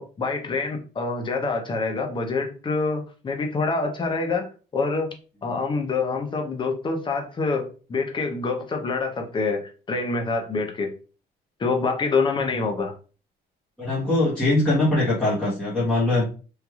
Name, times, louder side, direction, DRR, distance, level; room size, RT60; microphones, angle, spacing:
voice 1, 0.0-4.4 4.7-5.1 5.4-10.9 11.6-12.9, left 4 dB, 30° left, 3 dB, 0.7 m, -26 dB
voice 2, 13.8-16.2, left 2 dB, 5° left, -10 dB, 1.1 m, -22 dB
3.2 x 2.6 x 2.3 m, 0.37 s
cardioid pair, 110°, 17 cm